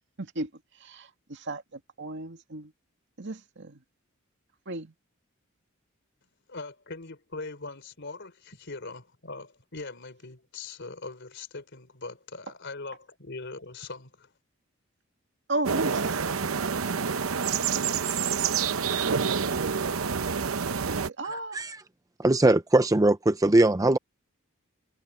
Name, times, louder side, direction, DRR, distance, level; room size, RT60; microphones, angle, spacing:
voice 1, 0.2-0.5 0.8-2.7 3.2-3.8 4.7-4.9 15.5-16.5 16.9-17.1 18.9-19.8 20.9-21.6, right 2 dB, 60° right, 2.2 m, -35 dB
voice 2, 6.5-14.3, left 3 dB, 60° left, 4.0 m, -41 dB
sound 1, 15.6-21.1, right 6 dB, 90° right, 0.8 m, -27 dB
voice 3, 21.3-21.8 22.2-24.0, right 2 dB, 15° right, 0.6 m, -21 dB
head